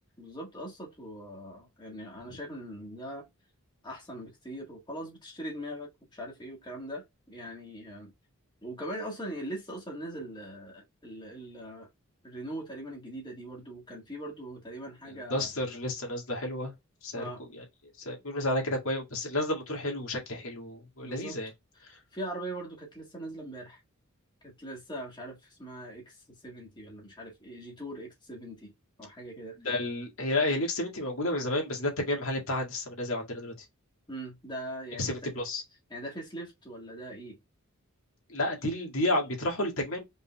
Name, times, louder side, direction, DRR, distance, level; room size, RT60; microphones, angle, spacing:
voice 1, 0.2-3.3 3.8-8.1 8.6-11.9 12.2-15.5 17.1-17.4 21.0-21.4 21.8-23.8 24.4-28.7 29.0-29.6 30.5-30.7 34.1-35.3 35.9-37.4, right 1 dB, 20° left, 1.7 m, -41 dB
voice 2, 15.0-16.7 17.0-17.6 18.0-21.5 21.9-22.0 29.6-33.5 35.0-35.6 38.3-40.0, left 1 dB, 65° left, 2.0 m, -31 dB
5.3 x 3.7 x 2.2 m
head